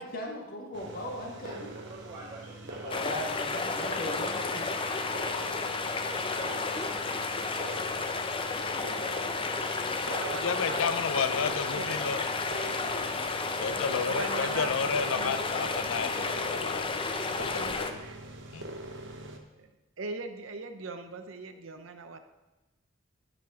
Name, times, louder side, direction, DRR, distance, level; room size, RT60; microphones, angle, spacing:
voice 1, 0.0-1.7 2.8-4.6, equal, 50° left, 0 dB, 1.7 m, -38 dB
sound 1, 0.7-19.4, right 1 dB, 65° right, 1.0 m, -43 dB
voice 2, 1.3-5.2 6.0-7.5, right 1 dB, 25° right, -11 dB, 2.4 m, -48 dB
sound 2, 2.9-17.9, left 4 dB, 25° left, 0.6 m, -32 dB
voice 3, 9.8-10.8 11.4-11.5 11.8-12.1 14.1-15.7 18.0-18.2 19.6-19.7 20.0-22.2, right 3 dB, 90° right, 8 dB, 0.7 m, -39 dB
voice 4, 10.3-12.3 13.6-17.0 17.3-18.1 18.5-18.7, left 6 dB, 90° left, 11 dB, 0.5 m, -32 dB
10.5 x 4.2 x 5.6 m, 1.1 s
head